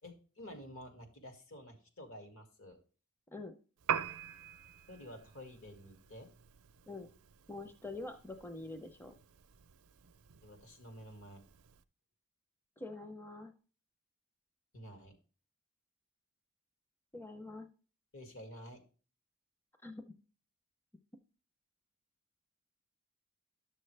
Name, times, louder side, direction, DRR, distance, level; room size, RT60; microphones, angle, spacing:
voice 1, 0.0-2.8 4.9-6.3 10.4-11.4 14.7-15.2 18.1-18.8, equal, 65° left, 4 dB, 2.2 m, -50 dB
Piano, 3.8-11.8, right 8 dB, 90° right, 0.5 m, -44 dB
voice 2, 7.5-9.1 12.8-13.5 17.1-17.7 19.8-20.0, left 2 dB, 10° left, 7 dB, 0.6 m, -45 dB
11.5 x 6.6 x 3.3 m, 0.38 s
head